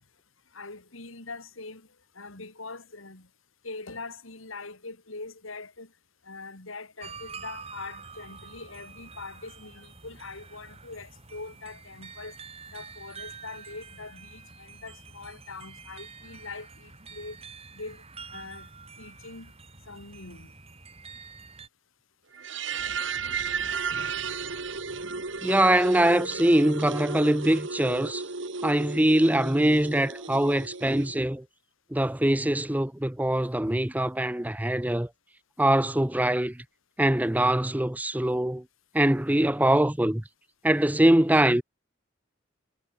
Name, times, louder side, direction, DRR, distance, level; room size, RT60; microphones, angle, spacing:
voice 1, 0.5-1.9 2.1-3.3 3.6-5.9 6.2-12.4 12.7-17.4 17.7-18.0 18.3-18.7 19.0-19.5 19.9-20.5, left 3 dB, 80° left, 3.5 m, -42 dB
sound 1, 7.0-21.7, right 5 dB, 30° right, 5.0 m, -47 dB
sound 2, 22.3-31.2, right 5 dB, 65° right, 2.0 m, -34 dB
voice 2, 25.4-28.2 28.6-31.4 31.9-35.1 35.6-36.6 37.0-38.6 38.9-40.2 40.6-41.6, right 1 dB, 10° right, 0.7 m, -23 dB
head